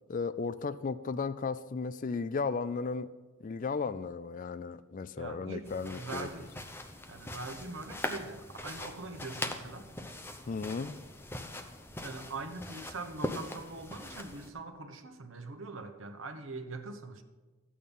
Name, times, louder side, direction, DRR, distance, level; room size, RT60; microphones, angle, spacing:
voice 1, 0.1-3.1 3.4-6.3 10.5-11.0, left 4 dB, 40° left, 15 dB, 0.4 m, -35 dB
voice 2, 5.2-6.7 7.1-9.9 12.0-17.2, right 3 dB, 65° right, 7 dB, 1.1 m, -42 dB
sound 1, 5.7-14.5, left 1 dB, 10° left, 0.7 m, -41 dB
13.5 x 8.6 x 5.4 m, 1.3 s
head